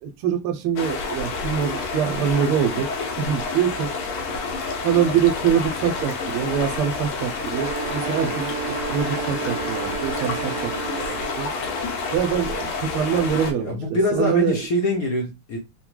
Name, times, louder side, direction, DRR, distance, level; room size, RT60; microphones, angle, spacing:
voice 1, 0.0-2.9 3.2-3.9 4.8-11.5 12.1-14.6, right 8 dB, 90° right, 1.5 m, -24 dB
sound 1, 0.8-13.5, left 4 dB, 85° left, 1.5 m, -29 dB
sound 2, 7.4-11.5, right 7 dB, 65° right, 1.2 m, -32 dB
voice 2, 13.6-15.6, left 1 dB, 65° left, 0.9 m, -24 dB
3.7 x 2.1 x 3.0 m
omnidirectional pair, 2.3 m